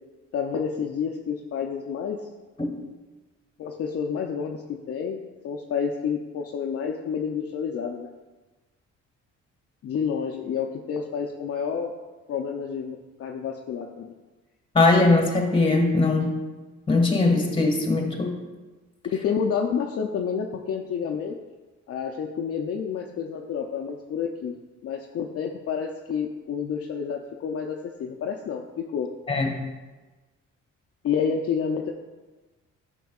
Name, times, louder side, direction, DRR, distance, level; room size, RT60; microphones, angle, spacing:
voice 1, 0.3-2.2 3.6-8.1 9.8-11.9 12.3-14.1 19.0-21.3 21.9-24.5 24.8-29.1 31.0-31.9, left 6 dB, 50° left, 1 dB, 0.6 m, -29 dB
voice 2, 14.7-16.4 16.9-18.3 29.3-29.6, left 3 dB, 15° left, 2 dB, 1.5 m, -21 dB
9.2 x 6.1 x 2.4 m, 1.2 s
cardioid pair, 90°, 30 cm